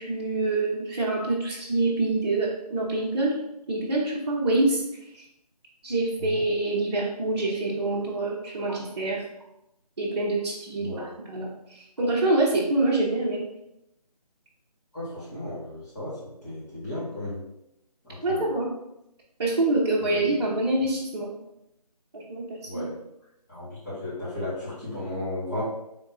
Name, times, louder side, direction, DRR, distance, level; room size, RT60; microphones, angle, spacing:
voice 1, 0.0-3.4 3.7-4.8 5.1-5.2 5.8-9.2 10.0-13.4 18.2-18.7 19.4-21.3 22.1-22.9, right 2 dB, 40° right, -6 dB, 0.8 m, -26 dB
voice 2, 14.9-17.4 18.0-18.5 20.0-20.3 22.6-22.9 23.5-25.6, left 1 dB, 25° left, -11 dB, 1.4 m, -34 dB
3.6 x 2.8 x 4.0 m, 0.85 s
figure-of-eight pair, 155°, 21 cm